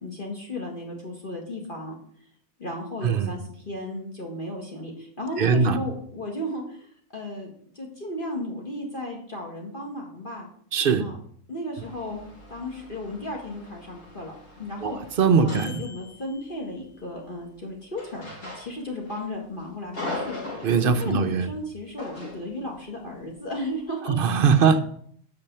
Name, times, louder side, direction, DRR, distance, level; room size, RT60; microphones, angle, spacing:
voice 1, 0.0-1.9 2.6-10.5 11.0-11.2 11.5-12.2 12.5-15.0 15.4-20.4 21.0-24.2, left 1 dB, 35° left, 1.8 m, -34 dB
voice 2, 3.0-3.4 5.4-5.8 10.7-11.1 14.8-14.9 15.2-15.8 20.6-21.5 24.0-24.8, right 5 dB, 50° right, 0.7 m, -21 dB
sound 1, 11.8-16.8 17.9-19.2 19.5-21.2 22.0-22.5, left 2 dB, 65° left, 4.1 m, -40 dB
8.8 x 6.1 x 6.6 m
omnidirectional pair, 1.6 m